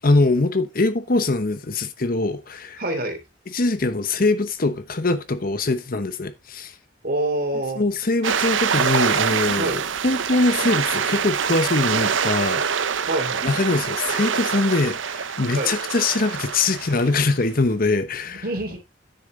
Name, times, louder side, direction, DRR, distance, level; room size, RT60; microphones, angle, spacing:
voice 1, 0.0-2.8 3.5-6.7 7.8-12.9 13.4-18.4, left 2 dB, 50° left, 1.0 m, -22 dB
voice 2, 2.8-3.2 7.0-7.8 9.6-9.9 13.1-13.5 15.5-15.8 18.3-18.8, right 1 dB, 50° right, 3.0 m, -26 dB
sound 1, 8.2-17.4, right 7 dB, 80° right, 0.7 m, -25 dB
9.8 x 7.2 x 3.7 m
head